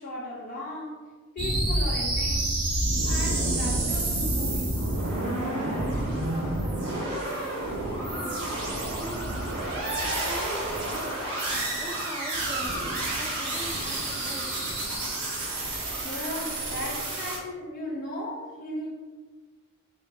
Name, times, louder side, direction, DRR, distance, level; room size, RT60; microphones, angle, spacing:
voice 1, 0.0-2.7 3.0-5.0 16.0-18.9, left 1 dB, 45° left, -5 dB, 0.6 m, -37 dB
sound 1, 1.4-17.4, right 1 dB, 55° right, 1.2 m, -29 dB
voice 2, 6.3-9.6 10.2-11.2 11.7-14.5, right 1 dB, 20° right, -1 dB, 0.6 m, -41 dB
3.4 x 2.8 x 3.9 m, 1.4 s
head